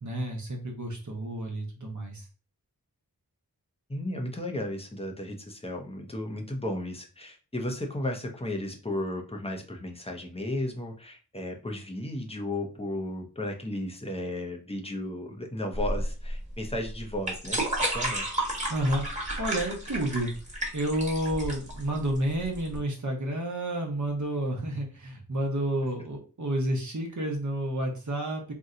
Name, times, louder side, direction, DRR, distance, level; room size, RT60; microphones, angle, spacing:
voice 1, 0.0-2.2 18.7-19.0 19.4-20.3 20.7-28.5, right 1 dB, 50° right, 1 dB, 0.9 m, -30 dB
voice 2, 3.9-18.3, left 1 dB, 15° left, 2 dB, 0.6 m, -34 dB
sound 1, 15.7-22.8, right 1 dB, 20° right, 1.2 m, -32 dB
2.7 x 2.1 x 3.7 m, 0.36 s
wide cardioid pair, 75°, 38 cm